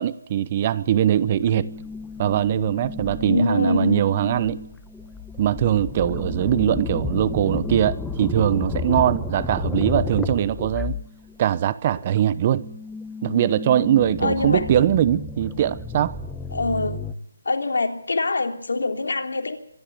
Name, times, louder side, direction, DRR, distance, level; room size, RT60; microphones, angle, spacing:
voice 1, 0.0-1.7 2.2-4.6 5.4-11.0 11.4-12.6 13.2-16.2, right 10 dB, 30° right, 0.9 m, -21 dB
sound 1, 0.9-11.6 12.0-17.1, left 4 dB, 5° left, 1.0 m, -32 dB
voice 2, 3.2-4.0 14.2-14.7 16.5-17.0 17.4-19.6, left 3 dB, 75° left, 3.3 m, -24 dB
25.0 x 12.5 x 9.5 m
figure-of-eight pair, 160°, 0 cm